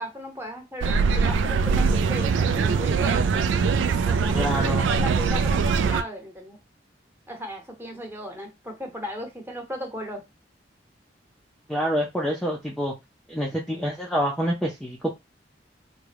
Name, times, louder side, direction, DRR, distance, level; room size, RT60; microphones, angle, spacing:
voice 1, 0.0-3.5 3.9-6.6 7.3-10.2, equal, 15° right, 1 dB, 1.0 m, -36 dB
sound 1, 0.8-6.0, right 5 dB, 85° right, 0.3 m, -22 dB
voice 2, 4.3-4.9 11.7-12.9 13.3-15.1, equal, ahead, -3 dB, 0.5 m, -27 dB
3.6 x 2.2 x 3.3 m, 0.22 s
head